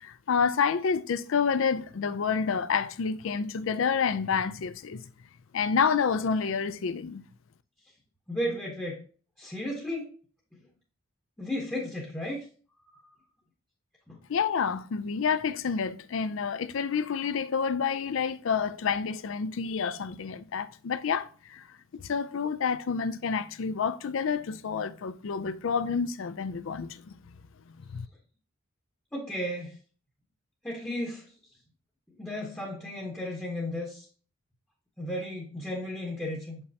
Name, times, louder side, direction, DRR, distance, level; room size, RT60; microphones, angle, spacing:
voice 1, 0.0-5.0 5.5-7.2 14.3-21.6 21.9-27.1 27.7-28.1, left 6 dB, 65° left, 0.4 m, -29 dB
voice 2, 8.3-9.0 9.4-10.1 11.4-12.4 14.1-14.2 29.1-29.8 30.6-31.3 32.2-34.1 35.0-36.6, left 1 dB, 5° left, 0.9 m, -34 dB
6.9 x 5.4 x 2.7 m
head